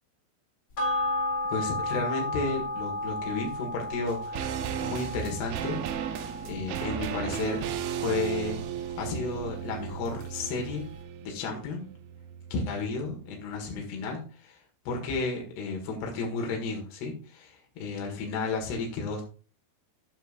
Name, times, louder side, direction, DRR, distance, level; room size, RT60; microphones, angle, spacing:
sound 1, 0.8-9.5 9.9-10.0, left 1 dB, 35° left, 2.4 m, -34 dB
voice 1, 1.5-5.8 6.4-7.6 8.0-8.6 9.0-10.9 11.2-11.9 12.5-19.2, left 3 dB, 75° left, 0 dB, 3.9 m, -33 dB
sound 2, 4.0-13.4 13.7-13.8, right 9 dB, 75° right, 2.2 m, -35 dB
13.5 x 9.0 x 2.6 m, 0.38 s
omnidirectional pair, 4.9 m